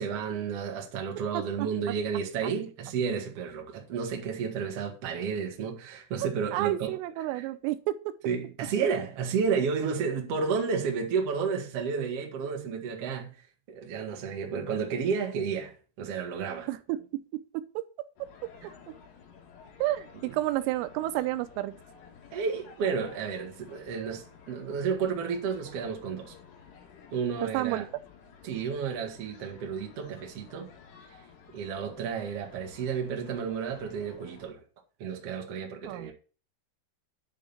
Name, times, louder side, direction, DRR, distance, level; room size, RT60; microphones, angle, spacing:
voice 1, 0.0-7.0 7.2-7.5 8.2-16.7 18.6-18.7 20.2-20.3 22.3-26.3 27.1-27.9 28.4-30.7 31.1-31.2 31.5-34.6 35.0-36.1, right 6 dB, 50° right, 1.8 m, -32 dB
voice 2, 6.5-8.0 16.7-17.2 17.5-17.8 19.8-21.8 27.5-27.9 35.8-36.1, right 15 dB, 85° right, 3.2 m, -30 dB
sound 1, 18.2-34.5, left 6 dB, 80° left, 4.3 m, -53 dB
10.0 x 3.8 x 7.1 m
omnidirectional pair, 5.8 m